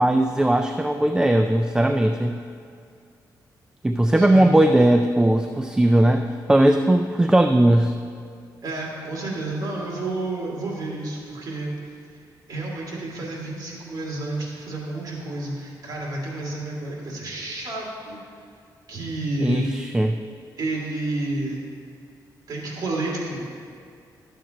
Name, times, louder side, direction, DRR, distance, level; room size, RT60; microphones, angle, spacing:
voice 1, 0.0-2.4 3.8-8.0 19.4-20.2, right 1 dB, 10° right, 6 dB, 0.3 m, -18 dB
voice 2, 4.2-4.5 8.6-11.8 12.5-18.2 18.9-19.7 20.6-21.6 22.5-23.5, right 2 dB, 55° right, -4 dB, 2.2 m, -30 dB
12.0 x 7.4 x 2.9 m, 2.3 s
cardioid pair, 100°, 8 cm